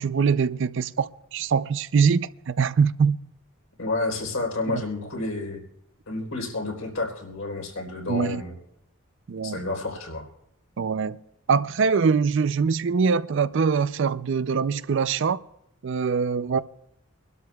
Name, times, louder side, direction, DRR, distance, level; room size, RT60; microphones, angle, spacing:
voice 1, 0.0-3.2 4.7-4.8 8.1-8.4 9.3-9.6 10.8-11.2 11.5-15.4 15.8-16.6, right 5 dB, 60° right, 0.4 m, -23 dB
voice 2, 3.8-5.6 6.1-8.5 9.4-10.3, left 2 dB, 80° left, 3.7 m, -30 dB
25.5 x 12.5 x 2.3 m
head